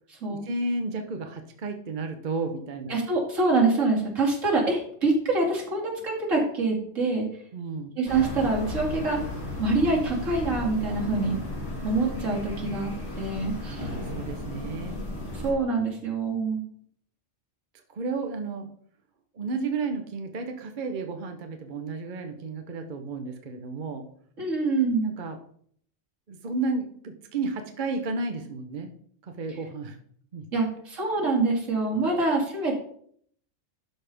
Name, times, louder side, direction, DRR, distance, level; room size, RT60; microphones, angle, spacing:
voice 1, 0.3-3.0 7.5-7.9 13.6-15.0 17.9-18.7 19.3-24.0 25.0-25.4 26.3-28.9 29.4-30.0 30.3-30.5 32.0-32.3, right 3 dB, 45° right, 5 dB, 0.9 m, -32 dB
voice 2, 2.9-7.3 8.0-9.2 9.6-11.4 11.8-13.9 15.3-16.6 24.4-25.1 30.5-32.8, right 3 dB, 75° right, -3 dB, 2.7 m, -25 dB
sound 1, 8.1-15.5, left 2 dB, 55° left, 2.3 m, -35 dB
12.0 x 5.3 x 3.4 m, 0.63 s
omnidirectional pair, 1.3 m